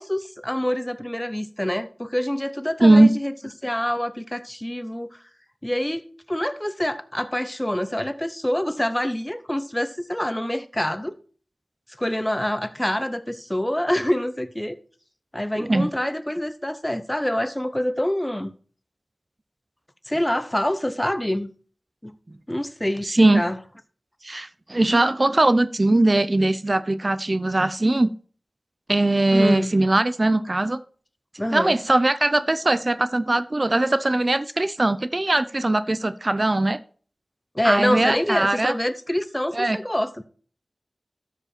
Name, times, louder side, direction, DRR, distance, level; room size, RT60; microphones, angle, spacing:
voice 1, 0.0-3.3 3.6-5.2 5.6-11.1 12.0-14.8 15.3-18.5 20.1-21.5 22.0-22.1 22.5-23.6 29.3-29.7 31.4-31.7 37.5-40.2, left 1 dB, 15° left, 0.8 m, -26 dB
voice 2, 2.8-3.1 15.6-15.9 23.0-23.4 24.2-28.1 28.9-30.8 31.5-36.8 37.6-38.7 39.5-39.8, right 2 dB, 40° right, 0.5 m, -20 dB
12.5 x 5.0 x 4.4 m
wide cardioid pair, 45°, 0 cm